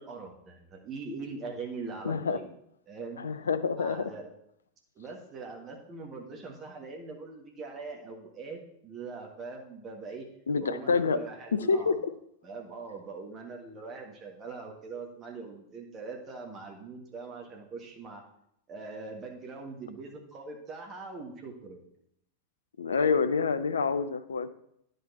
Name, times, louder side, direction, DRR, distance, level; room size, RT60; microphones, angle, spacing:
voice 1, 0.0-2.5 2.9-4.3 4.9-10.3 10.6-12.0 12.4-18.2 18.7-21.8, right 4 dB, 30° right, 1 dB, 1.5 m, -42 dB
voice 2, 2.0-2.4 3.2-4.0 10.5-11.2 11.5-11.9 22.8-24.5, left 5 dB, 70° left, 12 dB, 0.5 m, -27 dB
10.0 x 5.4 x 4.1 m, 0.75 s
figure-of-eight pair, 90°, 0 cm